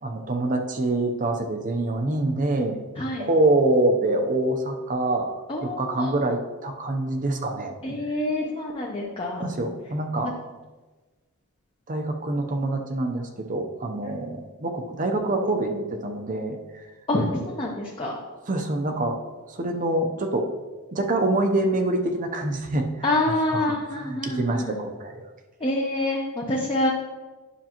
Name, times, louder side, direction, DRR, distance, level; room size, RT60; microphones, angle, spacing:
voice 1, 0.0-2.8 3.2-5.3 5.6-7.7 9.4-10.3 11.9-16.6 18.5-19.2 19.5-20.5 20.9-23.2 23.4-25.2, right 2 dB, 35° right, 5 dB, 0.7 m, -25 dB
voice 2, 3.0-3.3 5.5-6.1 7.8-9.5 17.1-18.2 23.0-24.7 25.6-26.9, left 1 dB, 25° left, -2 dB, 0.7 m, -26 dB
9.9 x 6.0 x 3.0 m, 1.3 s
head